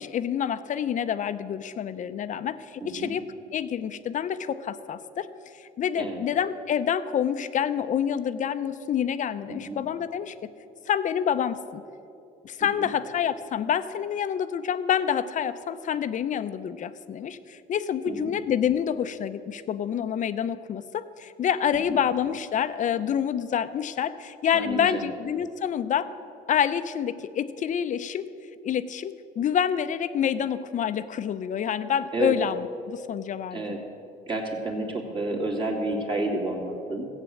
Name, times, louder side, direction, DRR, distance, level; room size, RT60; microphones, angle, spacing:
voice 1, 0.0-3.2 3.5-5.3 5.5-10.5 10.9-11.8 12.4-26.1 26.5-28.3 28.6-33.6, left 8 dB, 50° left, 12 dB, 0.7 m, -27 dB
voice 2, 2.8-3.1 6.0-6.2 9.5-9.8 12.6-12.9 18.1-18.3 24.5-25.1 32.1-32.3 33.5-33.8 34.3-37.1, right 2 dB, 30° right, -1 dB, 2.7 m, -30 dB
15.0 x 8.4 x 7.7 m, 2.7 s
cardioid pair, 110°, 17 cm